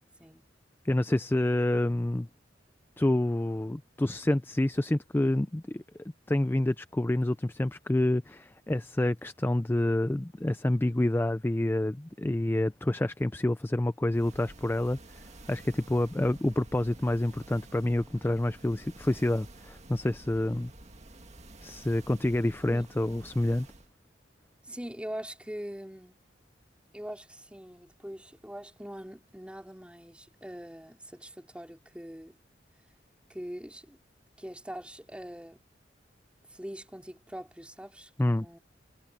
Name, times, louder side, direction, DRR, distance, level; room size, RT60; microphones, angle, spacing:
voice 1, 0.8-2.3 3.0-20.7 21.6-23.7 38.2-38.5, left 1 dB, 10° left, 0.4 m, -28 dB
sound 1, 14.1-23.9, right 2 dB, 40° right, 1.9 m, -50 dB
voice 2, 24.7-26.2 26.9-32.4 33.3-34.0 34.4-35.6 36.5-38.6, equal, 5° right, 3.4 m, -42 dB
head